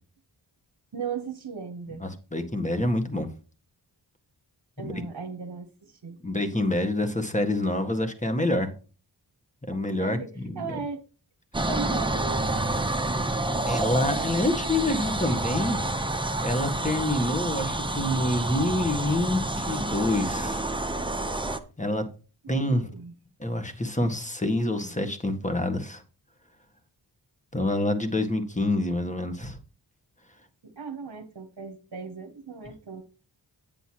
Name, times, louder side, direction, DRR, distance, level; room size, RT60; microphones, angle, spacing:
voice 1, 0.9-2.0 4.8-6.2 9.7-10.3 10.6-11.0 11.7-12.9 22.4-23.1 30.6-33.0, right 5 dB, 55° right, 1.2 m, -37 dB
voice 2, 2.0-3.3 4.8-5.0 6.2-8.7 9.7-10.8 13.7-15.8 16.4-20.7 21.8-22.1 22.5-22.9 23.4-26.0 27.5-29.6, left 1 dB, 15° left, 1.8 m, -27 dB
sound 1, 11.5-21.6, right 2 dB, 10° right, 0.9 m, -28 dB
9.3 x 8.0 x 3.0 m
cardioid pair, 45°, 47 cm